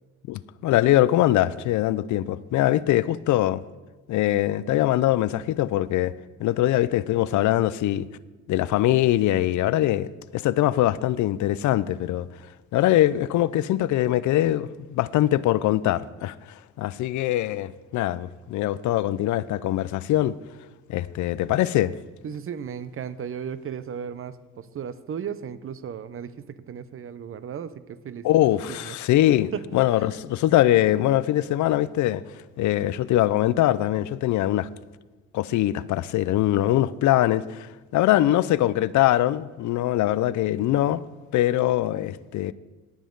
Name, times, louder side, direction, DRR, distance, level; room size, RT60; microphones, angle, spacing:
voice 1, 0.3-3.6 4.1-6.1 6.4-8.1 8.5-12.3 12.7-16.3 16.8-20.4 20.9-21.9 28.2-32.2 32.6-34.7 35.3-41.0 41.3-42.5, left 14 dB, 75° left, 0.5 m, -22 dB
voice 2, 22.2-28.3 28.7-29.0 29.5-29.6 30.0-30.1, right 8 dB, 45° right, 0.7 m, -35 dB
19.0 x 7.3 x 3.9 m
cardioid pair, 90°, 30 cm